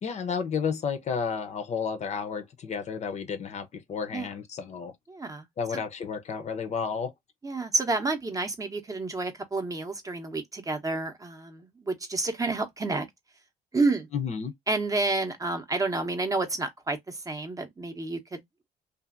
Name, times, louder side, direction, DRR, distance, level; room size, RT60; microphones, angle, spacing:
voice 1, 0.0-4.9 5.6-7.1 14.1-14.5, left 6 dB, 40° left, 0.6 m, -32 dB
voice 2, 5.1-5.4 7.4-13.1 13.7-14.1 14.7-18.4, right 3 dB, 20° right, 0.7 m, -29 dB
2.7 x 2.5 x 2.4 m
cardioid pair, 110°, 17 cm